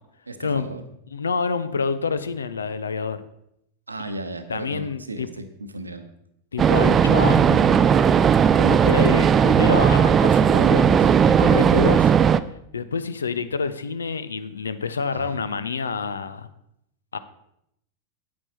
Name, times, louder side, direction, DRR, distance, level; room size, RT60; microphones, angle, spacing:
voice 1, 0.3-0.8 3.9-6.1 6.7-7.1 15.1-15.5, right 1 dB, 80° right, 9 dB, 0.9 m, -35 dB
voice 2, 1.1-3.2 4.0-4.1 4.5-5.3 6.5-7.9 8.5-12.1 12.7-16.5 17.1-17.2, left 5 dB, 70° left, 13 dB, 0.6 m, -27 dB
sound 1, 6.6-12.4, right 7 dB, 25° right, 0.3 m, -17 dB
8.9 x 8.3 x 4.3 m, 0.77 s
figure-of-eight pair, 90°, 0 cm